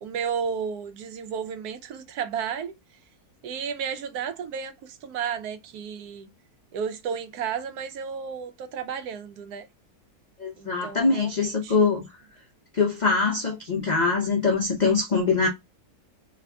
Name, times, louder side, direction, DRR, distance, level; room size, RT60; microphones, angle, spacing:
voice 1, 0.0-2.7 3.4-6.3 6.7-9.7 10.6-11.7, right 7 dB, 80° right, 1.1 m, -33 dB
voice 2, 10.4-12.0 12.7-15.5, left 4 dB, 70° left, 0.4 m, -23 dB
3.3 x 2.3 x 3.4 m
omnidirectional pair, 1.6 m